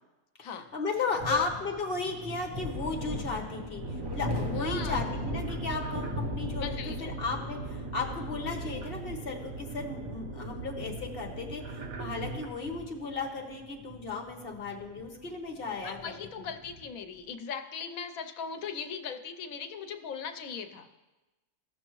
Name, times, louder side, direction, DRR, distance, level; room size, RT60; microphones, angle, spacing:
voice 1, 0.4-16.1 16.4-16.5, left 4 dB, 45° left, 2 dB, 1.3 m, -35 dB
sound 1, 1.1-17.0, left 2 dB, 20° right, 0.8 m, -40 dB
sound 2, 3.8-12.5, right 3 dB, 90° right, 1.3 m, -39 dB
voice 2, 4.6-5.1 6.6-7.2 15.8-21.0, left 6 dB, 80° left, 7 dB, 1.1 m, -39 dB
16.0 x 6.2 x 3.0 m, 1.1 s
omnidirectional pair, 1.4 m